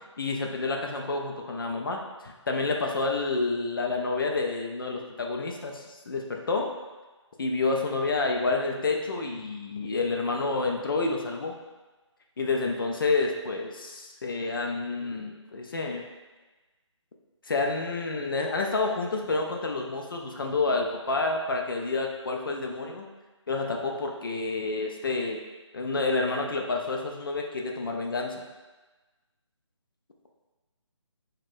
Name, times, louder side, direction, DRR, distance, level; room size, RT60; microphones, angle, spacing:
voice 1, 0.2-6.7 7.4-11.6 12.4-16.0 17.5-23.1 23.5-25.4 25.7-28.3, left 3 dB, 45° left, 1 dB, 0.4 m, -29 dB
3.9 x 2.2 x 2.5 m, 1.2 s
figure-of-eight pair, 155°, 16 cm